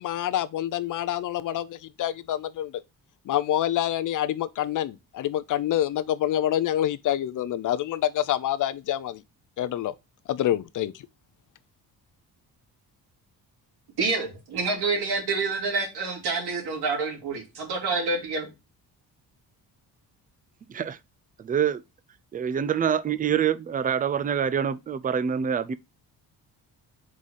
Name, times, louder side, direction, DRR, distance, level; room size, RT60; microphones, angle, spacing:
voice 1, 0.0-2.7 3.3-9.2 9.6-9.9 10.3-10.9, left 12 dB, 55° left, 0.6 m, -27 dB
voice 2, 14.0-18.5, right 4 dB, 80° right, 2.9 m, -27 dB
voice 3, 21.4-21.8 22.3-25.7, right 8 dB, 25° right, 0.4 m, -26 dB
4.8 x 4.0 x 5.5 m
cardioid pair, 140°, 38 cm